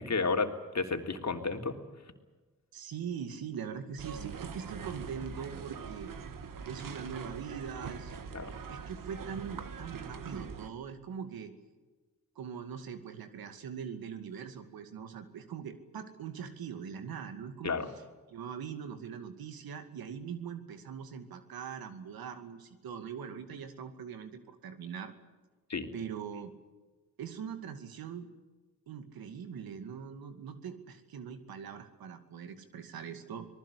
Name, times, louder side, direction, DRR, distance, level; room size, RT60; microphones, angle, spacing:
voice 1, 0.0-1.8 8.3-8.5 17.6-17.9 25.7-25.9, left 4 dB, 50° left, 4 dB, 3.3 m, -32 dB
voice 2, 2.7-6.1 6.7-8.2 8.6-11.5 12.4-17.8 18.3-25.1 25.9-26.5 27.2-28.3 28.9-33.5, right 7 dB, 90° right, 8 dB, 2.4 m, -42 dB
sound 1, 4.0-10.7, right 5 dB, 65° right, 1.8 m, -43 dB
25.5 x 19.0 x 8.4 m, 1.3 s
cardioid pair, 50°, 35 cm